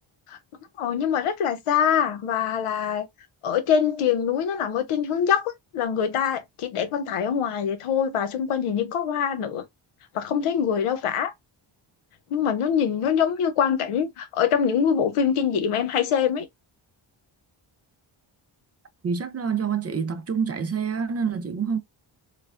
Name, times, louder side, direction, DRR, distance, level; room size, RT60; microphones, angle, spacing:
voice 1, 0.8-3.1 3.4-9.6 10.1-11.3 12.3-16.5, left 8 dB, 90° left, 0.7 m, -24 dB
voice 2, 19.0-21.8, right 6 dB, 35° right, 0.4 m, -27 dB
3.2 x 2.1 x 2.4 m
cardioid pair, 70°, 50 cm